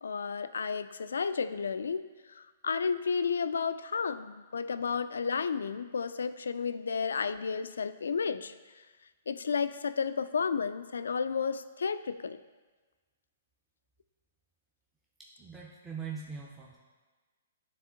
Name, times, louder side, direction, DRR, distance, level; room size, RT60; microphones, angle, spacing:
voice 1, 0.0-8.5 9.3-12.4, left 5 dB, 90° left, 13 dB, 0.3 m, -32 dB
voice 2, 15.2-16.8, right 6 dB, 5° right, -4 dB, 0.5 m, -42 dB
9.5 x 3.5 x 3.8 m, 1.3 s
hypercardioid pair, 155°, 0 cm